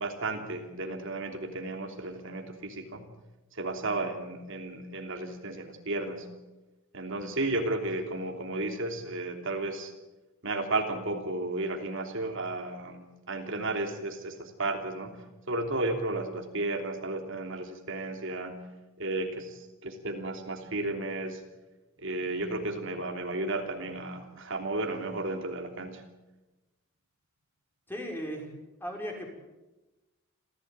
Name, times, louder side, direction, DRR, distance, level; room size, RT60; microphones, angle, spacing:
voice 1, 0.0-3.1 3.5-6.3 6.9-9.9 10.4-15.2 15.5-18.7 19.0-21.4 22.0-26.0, right 2 dB, 60° right, 4 dB, 3.1 m, -33 dB
voice 2, 27.9-28.5 28.8-29.3, equal, 10° left, 1 dB, 5.8 m, -36 dB
28.0 x 16.0 x 8.8 m, 1.1 s
head